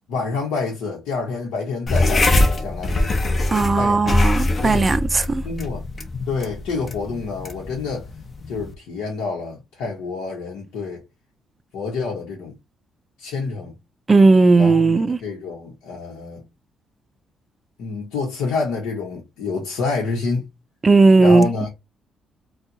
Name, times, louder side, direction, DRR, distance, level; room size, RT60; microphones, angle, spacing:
voice 1, 0.1-3.1 3.8-4.1 4.6-4.9 5.4-5.9 6.3-8.1 8.5-11.0 11.7-12.5 13.2-13.7 14.5-16.4 17.8-20.5 21.2-21.7, left 4 dB, 90° left, 1.0 m, -28 dB
sound 1, 1.9-8.7, left 2 dB, 40° left, 0.8 m, -22 dB
voice 2, 3.5-5.4 14.1-15.2 20.8-21.5, right 3 dB, 30° right, 0.4 m, -15 dB
4.3 x 2.3 x 2.6 m
cardioid pair, 90°, 0 cm